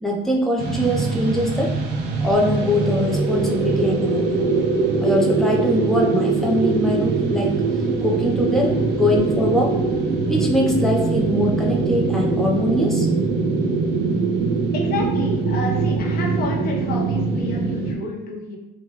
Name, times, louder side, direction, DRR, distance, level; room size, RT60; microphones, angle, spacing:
voice 1, 0.0-1.7 2.2-4.4 5.0-7.5 8.0-9.7 10.3-13.1, left 1 dB, ahead, -2 dB, 0.6 m, -22 dB
sound 1, 0.6-17.9, right 4 dB, 80° right, 0.5 m, -22 dB
voice 2, 14.7-18.6, left 3 dB, 65° left, -2 dB, 0.8 m, -30 dB
3.2 x 2.2 x 2.9 m, 0.96 s
cardioid pair, 110°, 17 cm